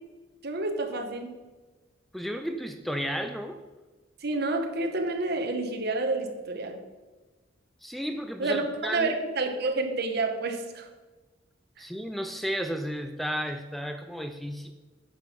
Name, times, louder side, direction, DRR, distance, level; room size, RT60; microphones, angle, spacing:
voice 1, 0.4-1.3 4.2-6.8 8.4-10.9, right 2 dB, 55° right, 5 dB, 1.2 m, -29 dB
voice 2, 2.1-3.6 7.8-9.1 11.8-14.7, equal, ahead, 7 dB, 0.4 m, -33 dB
9.5 x 6.2 x 5.3 m, 1.2 s
head